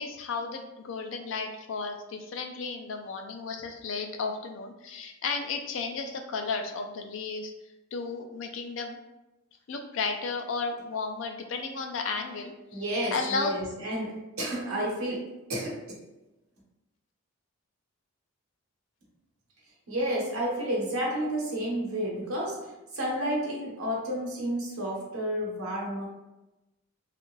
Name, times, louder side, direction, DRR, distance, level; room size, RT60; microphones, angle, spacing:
voice 1, 0.0-7.5 7.9-9.0 9.7-12.8 13.1-13.5, left 4 dB, 60° left, 4 dB, 0.4 m, -33 dB
voice 2, 12.7-16.0 19.9-26.1, equal, 80° right, -3 dB, 0.9 m, -31 dB
2.5 x 2.4 x 3.1 m, 0.99 s
head